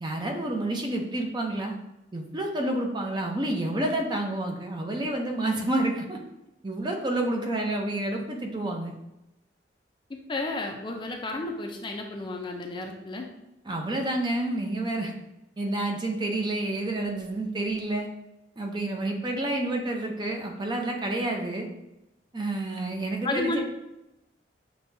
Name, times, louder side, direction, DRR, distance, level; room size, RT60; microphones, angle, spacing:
voice 1, 0.0-1.8 2.1-6.2 6.6-9.0 13.6-15.1 15.6-18.1 18.6-21.7 22.3-23.6, right 1 dB, 25° right, 2 dB, 0.6 m, -29 dB
voice 2, 10.3-13.3 23.2-23.6, left 2 dB, 25° left, 2 dB, 0.4 m, -32 dB
6.8 x 2.3 x 2.7 m, 0.93 s
head